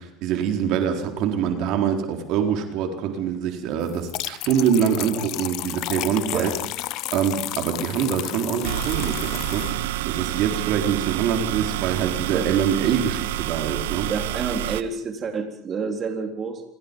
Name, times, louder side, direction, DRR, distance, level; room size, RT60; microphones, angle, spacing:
voice 1, 0.0-6.5 7.1-14.1, right 8 dB, 60° right, 5 dB, 4.1 m, -24 dB
sound 1, 3.9-9.7, left 18 dB, 60° left, 0.9 m, -32 dB
sound 2, 8.6-14.8, right 14 dB, 85° right, 1.3 m, -28 dB
voice 2, 14.1-16.6, right 5 dB, 35° right, 4 dB, 3.8 m, -28 dB
29.5 x 22.0 x 5.5 m, 0.67 s
supercardioid pair, 95°, 0 cm